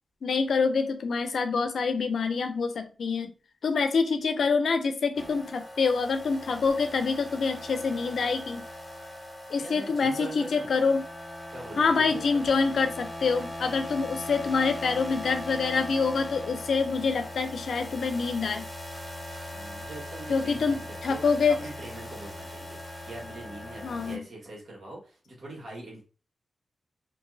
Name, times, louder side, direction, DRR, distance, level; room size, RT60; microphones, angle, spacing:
voice 1, 0.2-3.3 3.6-8.6 9.5-11.0 11.8-18.7 20.3-21.6 23.8-24.2, left 4 dB, 80° left, 8 dB, 0.4 m, -26 dB
sound 1, 5.1-24.2, left 1 dB, 25° left, 1.7 m, -40 dB
voice 2, 9.6-10.7 11.5-12.6 19.4-22.8 23.0-26.0, right 1 dB, 70° right, -3 dB, 1.4 m, -43 dB
2.8 x 2.7 x 2.6 m, 0.35 s
cardioid pair, 50°, 0 cm